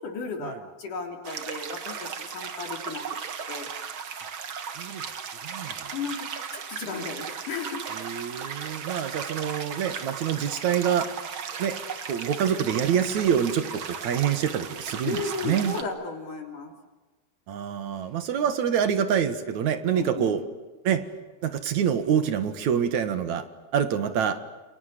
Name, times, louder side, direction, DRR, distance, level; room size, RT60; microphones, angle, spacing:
voice 1, 0.0-3.0 3.5-3.7 5.9-6.2 6.5-7.9 15.0-16.7 19.9-20.4, left 4 dB, 50° left, 3 dB, 4.6 m, -34 dB
sound 1, 1.2-15.8, right 7 dB, 85° right, 1.1 m, -36 dB
voice 2, 4.8-6.0 7.9-11.1 11.6-11.8 12.1-15.8 17.5-20.4 20.8-21.1 21.4-23.4 23.7-24.4, right 8 dB, 55° right, 10 dB, 2.4 m, -26 dB
29.5 x 29.0 x 6.9 m, 1.2 s
omnidirectional pair, 5.1 m